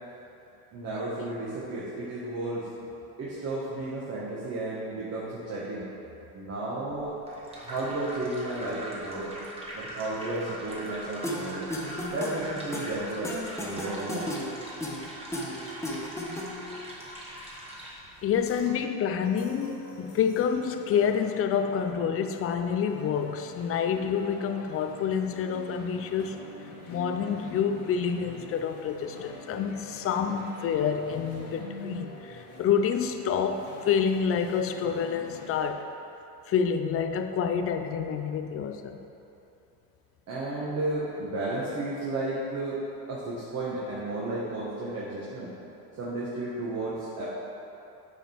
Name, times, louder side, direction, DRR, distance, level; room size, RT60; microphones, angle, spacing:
voice 1, 0.7-2.7 3.2-5.8 6.3-7.1 7.6-9.3 9.7-11.7 12.1-14.3 40.3-42.8 43.1-45.5 46.0-47.3, right 2 dB, 35° right, -8 dB, 1.7 m, -33 dB
sound 1, 7.0-18.7, equal, 15° right, 1.7 m, -42 dB
sound 2, 11.2-16.8, equal, 5° left, 1.1 m, -35 dB
voice 2, 18.2-26.4 26.9-35.9 36.5-39.0, left 7 dB, 30° left, 7 dB, 0.6 m, -28 dB
sound 3, 19.2-35.7, left 3 dB, 55° left, 1.7 m, -45 dB
9.3 x 5.2 x 4.6 m, 2.9 s
supercardioid pair, 105°, 43 cm